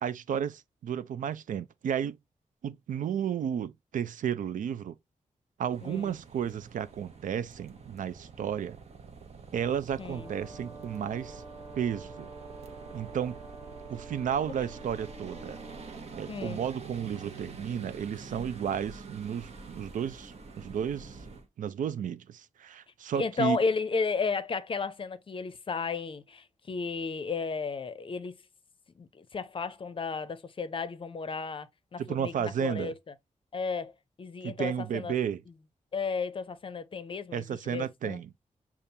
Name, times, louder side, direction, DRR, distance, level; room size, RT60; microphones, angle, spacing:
voice 1, 0.0-2.2 2.6-4.9 5.6-8.8 9.5-11.4 11.8-12.3 12.9-13.4 13.9-15.6 16.1-21.2 21.6-23.6 32.0-32.9 34.4-35.4 37.3-38.3, right 8 dB, 85° right, 0.4 m, -33 dB
sound 1, 5.7-21.5, right 4 dB, 50° right, 0.8 m, -47 dB
voice 2, 5.8-6.2 10.0-10.3 16.3-16.6 23.1-28.3 29.0-32.9 33.5-33.9 34.2-35.1 35.9-38.2, left 4 dB, 40° left, 0.5 m, -33 dB
Brass instrument, 10.0-16.0, right 3 dB, 30° right, 1.3 m, -48 dB
6.7 x 2.4 x 2.7 m
wide cardioid pair, 115°, 13 cm